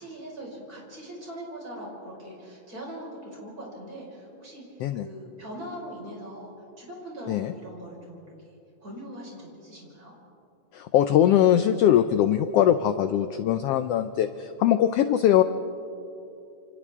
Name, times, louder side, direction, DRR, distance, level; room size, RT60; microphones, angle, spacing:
voice 1, 0.0-10.1, right 1 dB, 30° right, -3 dB, 5.6 m, -41 dB
voice 2, 10.7-15.4, left 10 dB, 85° left, 10 dB, 1.3 m, -21 dB
28.0 x 28.0 x 3.6 m, 2.8 s
omnidirectional pair, 3.4 m